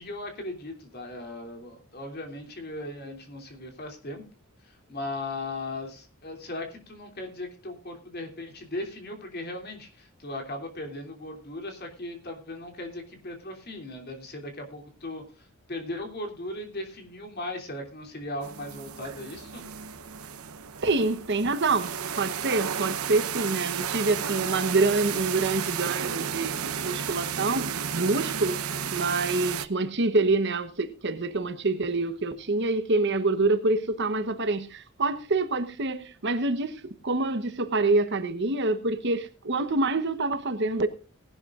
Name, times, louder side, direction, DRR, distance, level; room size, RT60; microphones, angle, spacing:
voice 1, 0.0-4.3 4.6-19.6, left 1 dB, 45° left, 3.1 m, -38 dB
sound 1, 18.4-29.7, right 8 dB, 85° right, 0.9 m, -33 dB
voice 2, 20.8-26.5 26.8-28.6 28.9-40.9, right 3 dB, 55° right, 1.1 m, -26 dB
19.0 x 11.5 x 2.5 m
head